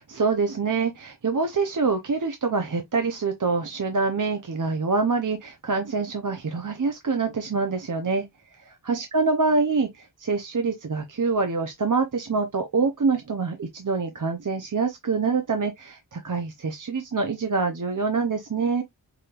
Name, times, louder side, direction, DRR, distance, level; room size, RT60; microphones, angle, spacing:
voice 1, 0.0-8.3 8.6-18.8, right 4 dB, 50° right, 0.7 m, -25 dB
4.8 x 3.1 x 2.4 m
wide cardioid pair, 55°, 41 cm